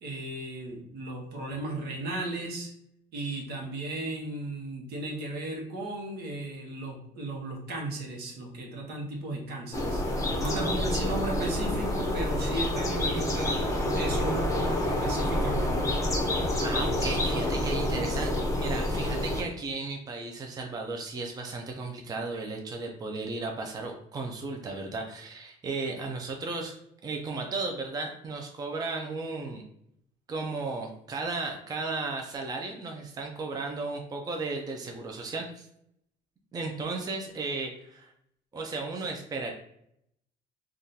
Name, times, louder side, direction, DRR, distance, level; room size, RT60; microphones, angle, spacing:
voice 1, 0.0-2.7 3.1-13.6 13.9-15.9, right 2 dB, 70° right, 0 dB, 0.9 m, -35 dB
sound 1, 9.7-19.4, left 1 dB, 20° left, 0.6 m, -28 dB
voice 2, 10.4-11.1 16.6-26.8 27.0-29.6 30.3-35.7 36.5-38.1 38.5-39.5, right 3 dB, 25° right, 2 dB, 0.4 m, -35 dB
3.6 x 2.4 x 2.7 m, 0.74 s
cardioid pair, 110°, 17 cm